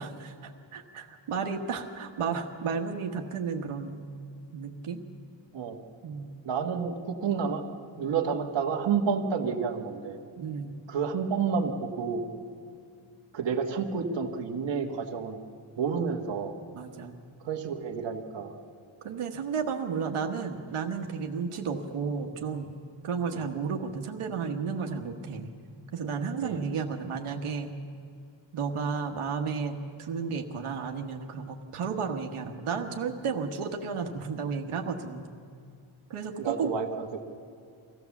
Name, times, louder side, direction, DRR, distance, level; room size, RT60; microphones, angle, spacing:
voice 1, 0.0-4.0 4.5-5.0 6.0-6.4 10.4-10.8 16.7-17.2 19.0-22.7 23.0-25.5 25.9-27.7 28.5-35.3 36.1-36.7, right 5 dB, 90° right, 4 dB, 1.4 m, -33 dB
voice 2, 6.4-7.6 8.0-10.2 10.9-12.2 13.3-15.4 15.8-16.5 17.4-18.5 23.3-23.4 26.4-26.6 36.4-37.2, right 6 dB, 60° right, 2 dB, 1.4 m, -30 dB
24.0 x 15.5 x 7.1 m, 2.3 s
wide cardioid pair, 175°, 49 cm